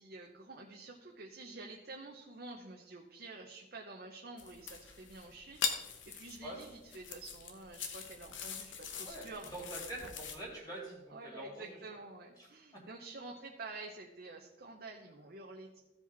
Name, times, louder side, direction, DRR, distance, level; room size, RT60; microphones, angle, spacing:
voice 1, 0.0-10.1 11.1-15.8, right 3 dB, 50° right, 0 dB, 0.8 m, -49 dB
sound 1, 4.4-10.4, left 7 dB, 65° left, 1.0 m, -42 dB
voice 2, 9.5-11.8 12.4-12.8, right 1 dB, 20° left, -5 dB, 2.6 m, -45 dB
15.5 x 5.1 x 4.0 m, 1.1 s
head